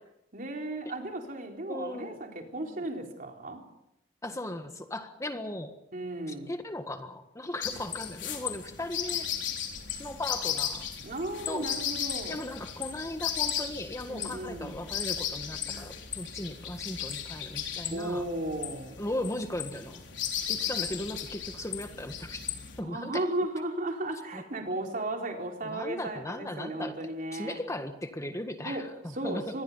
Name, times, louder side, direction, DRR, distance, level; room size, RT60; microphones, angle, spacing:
voice 1, 0.3-3.6 5.9-6.5 11.0-12.4 14.1-14.8 17.9-19.0 22.8-27.6 28.6-28.9 29.1-29.6, right 1 dB, 50° right, 2 dB, 4.0 m, -35 dB
voice 2, 1.7-2.2 2.6-2.8 4.2-5.8 6.3-9.3 10.0-10.9 11.5-11.7 12.3-18.3 19.0-20.0 20.5-22.4 22.8-23.2 24.3-24.4 25.6-27.0 27.3-29.5, left 1 dB, 15° left, 7 dB, 1.6 m, -37 dB
sound 1, 7.6-22.8, left 9 dB, 85° left, 4.0 m, -35 dB
26.0 x 21.0 x 5.7 m, 0.82 s
head